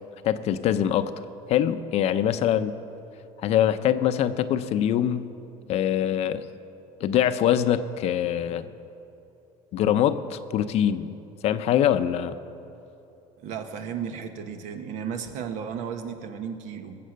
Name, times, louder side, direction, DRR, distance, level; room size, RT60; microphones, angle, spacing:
voice 1, 0.2-1.1 1.5-2.7 3.4-5.3 5.7-6.4 7.0-8.7 9.7-11.1 11.4-12.4, left 10 dB, 50° left, 11 dB, 0.6 m, -23 dB
voice 2, 13.4-17.0, right 7 dB, 65° right, 7 dB, 1.3 m, -34 dB
21.0 x 7.7 x 6.5 m, 2.9 s
cardioid pair, 135°, 13 cm